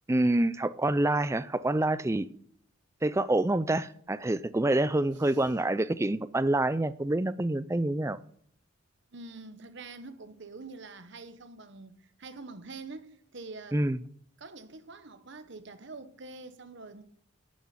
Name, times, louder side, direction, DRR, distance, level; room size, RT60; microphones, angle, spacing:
voice 1, 0.1-2.3 3.0-8.2 13.7-14.0, right 1 dB, 15° right, 0.4 m, -27 dB
voice 2, 5.1-5.6 9.1-13.8 14.4-17.0, right 3 dB, 55° right, 1.1 m, -45 dB
12.0 x 7.2 x 7.5 m
head